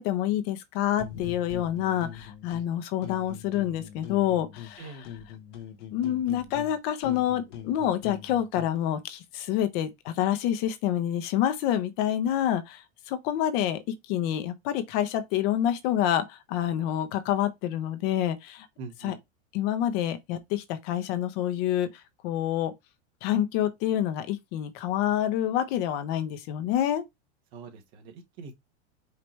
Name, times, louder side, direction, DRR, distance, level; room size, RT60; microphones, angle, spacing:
voice 1, 0.0-5.0 5.9-13.8 14.1-18.7 19.0-19.2 19.5-21.9 22.2-22.7 23.2-27.0, left 11 dB, 55° left, 1.0 m, -27 dB
sound 1, 1.0-2.7 3.0-4.8 5.0-8.8, left 9 dB, 85° left, 1.1 m, -43 dB
voice 2, 18.8-19.2 27.5-28.5, right 4 dB, 60° right, 1.6 m, -43 dB
5.1 x 2.9 x 3.2 m
hypercardioid pair, 115°, 35 cm